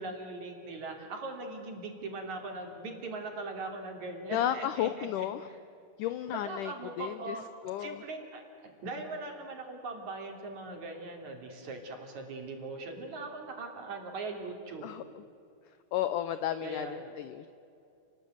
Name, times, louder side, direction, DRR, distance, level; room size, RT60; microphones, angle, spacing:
voice 1, 0.0-5.6 6.3-7.4 7.8-14.9 16.6-17.2, right 3 dB, 50° right, 3 dB, 4.3 m, -40 dB
voice 2, 4.3-5.5 6.0-7.4 7.6-8.0 14.8-15.2 15.9-17.5, left 11 dB, 80° left, 12 dB, 1.9 m, -33 dB
30.0 x 19.5 x 9.4 m, 2.6 s
omnidirectional pair, 4.4 m